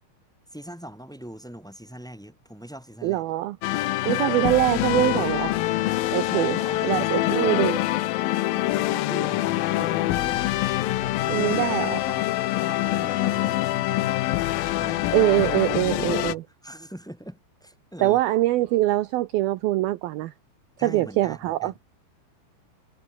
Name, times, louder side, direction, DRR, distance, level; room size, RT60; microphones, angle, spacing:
voice 1, 0.5-3.3 3.9-4.6 6.2-7.6 8.7-10.5 10.8-14.2 14.7-15.1 15.4-18.2 20.8-21.8, right 1 dB, ahead, 5.0 m, -41 dB
voice 2, 3.0-3.6 4.1-5.5 6.1-6.6 6.8-7.8 11.3-12.0 15.1-16.4 18.0-20.3 20.8-21.8, right 16 dB, 80° right, 2.2 m, -23 dB
sound 1, 3.6-16.3, left 16 dB, 80° left, 2.1 m, -25 dB
omnidirectional pair, 5.4 m